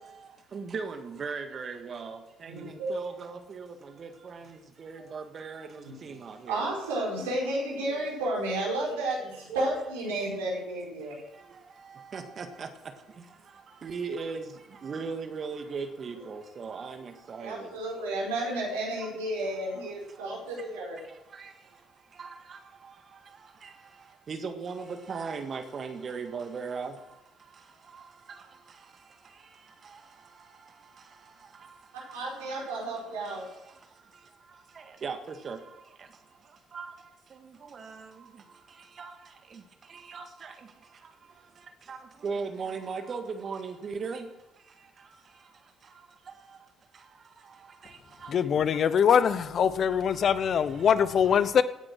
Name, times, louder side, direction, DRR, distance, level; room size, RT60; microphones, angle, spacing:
voice 1, 0.5-2.2 2.7-3.7 4.0-4.4 4.8-5.7 6.0-6.6 12.1-12.7 13.8-14.4 14.8-17.0 17.3-17.7 22.2-22.3 24.3-26.9 35.0-35.2 35.4-35.6 36.7-36.9 39.0-39.1 40.1-40.2 41.9-42.0 42.2-44.3 49.2-49.3, right 5 dB, 45° right, 1.7 m, -36 dB
voice 2, 2.5-2.9 5.8-6.0 6.5-11.1 16.1-16.2 17.4-21.0 32.1-33.4, right 1 dB, 80° right, 4.9 m, -32 dB
voice 3, 48.3-51.6, left 7 dB, 50° left, 0.9 m, -23 dB
17.5 x 9.8 x 6.3 m
hypercardioid pair, 50°, 0 cm